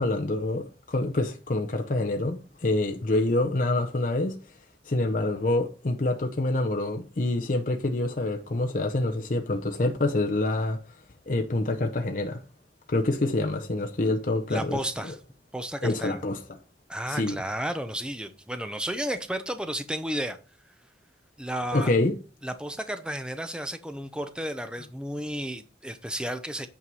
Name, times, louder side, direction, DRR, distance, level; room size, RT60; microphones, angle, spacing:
voice 1, 0.0-4.4 4.9-10.8 11.3-12.4 12.9-14.8 15.8-16.4 17.1-17.4 21.7-22.2, left 2 dB, 45° left, 0.7 m, -26 dB
voice 2, 14.5-15.2 15.5-16.2 16.9-20.4 21.4-21.9 22.4-26.7, equal, 5° right, 0.7 m, -33 dB
8.7 x 4.7 x 5.3 m
head